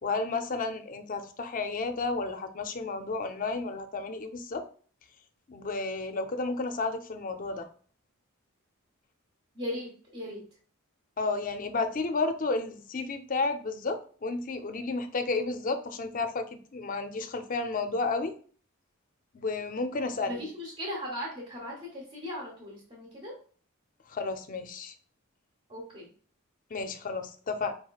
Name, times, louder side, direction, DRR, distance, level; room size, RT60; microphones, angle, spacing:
voice 1, 0.0-4.6 5.5-7.7 11.2-16.5 16.7-18.3 19.3-20.4 24.1-24.9 26.7-27.8, left 3 dB, 40° left, 8 dB, 0.5 m, -32 dB
voice 2, 9.5-10.4 20.2-23.3 25.7-26.1, left 1 dB, 30° right, -3 dB, 1.1 m, -38 dB
4.8 x 3.1 x 2.3 m, 0.44 s
head